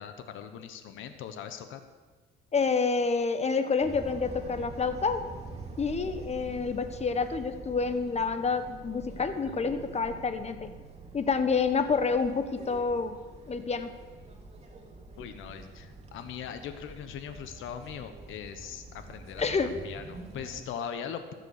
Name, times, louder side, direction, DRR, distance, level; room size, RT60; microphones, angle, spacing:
voice 1, 0.0-1.8 15.2-21.3, left 8 dB, 85° left, 9 dB, 1.1 m, -40 dB
voice 2, 2.5-5.3 5.8-10.7 11.1-13.2 13.5-14.0 19.4-19.7, left 5 dB, 35° left, 9 dB, 1.2 m, -28 dB
sound 1, 3.8-20.6, right 3 dB, 30° right, 2.7 m, -46 dB
14.5 x 8.2 x 6.6 m, 1.4 s
cardioid pair, 90°, 20 cm